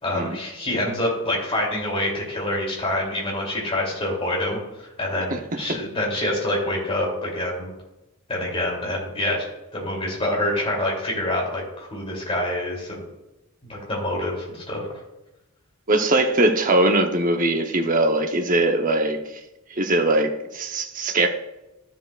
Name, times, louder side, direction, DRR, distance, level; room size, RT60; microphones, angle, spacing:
voice 1, 0.0-4.6 5.0-7.7 8.3-9.4 9.7-13.0 13.7-14.9, left 1 dB, 25° left, -3 dB, 2.8 m, -26 dB
voice 2, 5.3-5.8 15.9-19.2 19.7-21.3, right 2 dB, 40° right, 5 dB, 0.8 m, -21 dB
13.5 x 7.2 x 2.4 m, 0.98 s
head